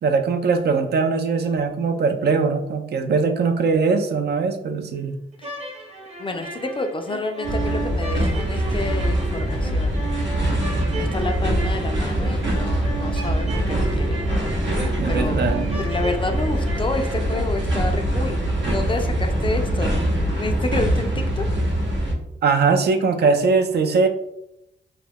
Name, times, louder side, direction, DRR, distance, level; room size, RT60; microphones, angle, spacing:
voice 1, 0.0-5.2 15.0-15.9 22.4-24.1, right 4 dB, 60° right, 7 dB, 0.4 m, -21 dB
sound 1, 5.3-17.6, right 3 dB, 35° right, 0.8 m, -34 dB
voice 2, 6.2-10.4 11.0-14.2 15.1-15.5 15.8-19.9 20.4-21.4, left 2 dB, 25° left, 6 dB, 0.3 m, -29 dB
sound 2, 7.4-22.1, right 1 dB, 75° right, 0.8 m, -23 dB
2.3 x 2.1 x 3.4 m, 0.81 s
cardioid pair, 65°, 19 cm